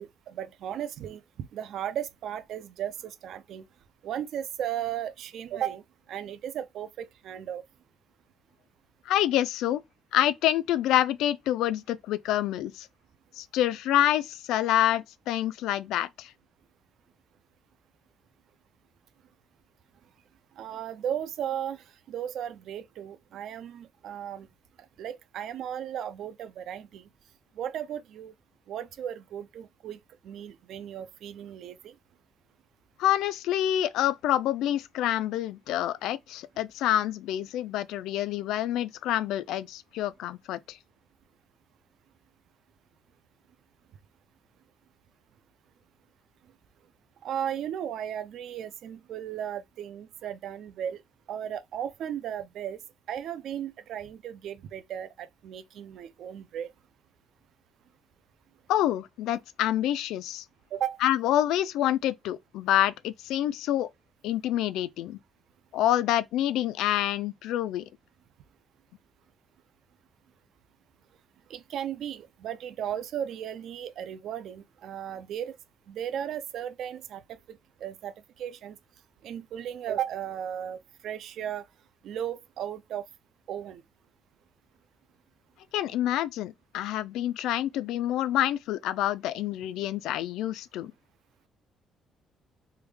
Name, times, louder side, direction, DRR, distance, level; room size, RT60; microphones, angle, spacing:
voice 1, 0.0-3.7 4.0-5.8 6.1-7.6 20.6-24.5 25.0-27.1 27.6-28.3 28.7-31.9 47.2-51.0 51.3-52.8 53.1-56.7 60.7-61.0 71.5-75.5 75.9-78.8 79.2-81.6 82.0-83.0 83.5-83.8, right 10 dB, 55° right, 0.4 m, -35 dB
voice 2, 9.1-9.8 10.1-12.9 13.4-16.3 33.0-40.8 58.7-60.4 61.0-63.9 64.2-65.2 65.7-67.9 85.7-90.9, left 12 dB, 85° left, 0.3 m, -27 dB
3.4 x 2.2 x 3.1 m
cardioid pair, 175°, 0 cm